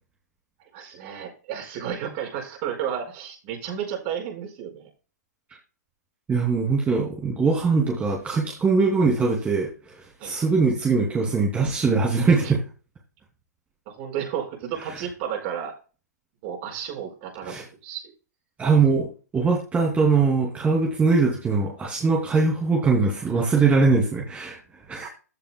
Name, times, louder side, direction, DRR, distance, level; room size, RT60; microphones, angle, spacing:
voice 1, 0.7-4.9 10.2-10.4 13.9-15.7 16.4-17.5 17.8-18.1 25.0-25.1, right 9 dB, 40° right, 3 dB, 4.8 m, -32 dB
voice 2, 6.3-12.6 14.9-15.0 17.4-17.6 18.6-24.6 24.9-25.1, right 4 dB, 15° right, -2 dB, 2.6 m, -22 dB
15.0 x 6.9 x 2.2 m, 0.33 s
figure-of-eight pair, 115°, 9 cm